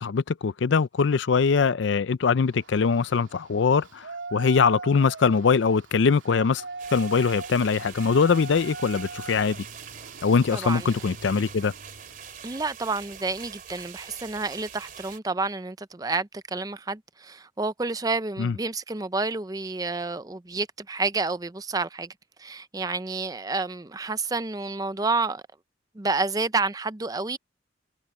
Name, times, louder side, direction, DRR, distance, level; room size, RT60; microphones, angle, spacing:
voice 1, 0.0-6.6 6.9-9.7 10.2-11.7 18.4-18.6, left 5 dB, 70° left, 0.4 m, -22 dB
Yell, 2.4-12.6, right 3 dB, 80° right, 2.7 m, -41 dB
sound 1, 6.8-15.2, right 8 dB, 45° right, 3.8 m, -44 dB
voice 2, 10.5-10.9 12.4-22.1 22.4-25.4 26.0-27.4, right 3 dB, 20° right, 0.5 m, -29 dB
head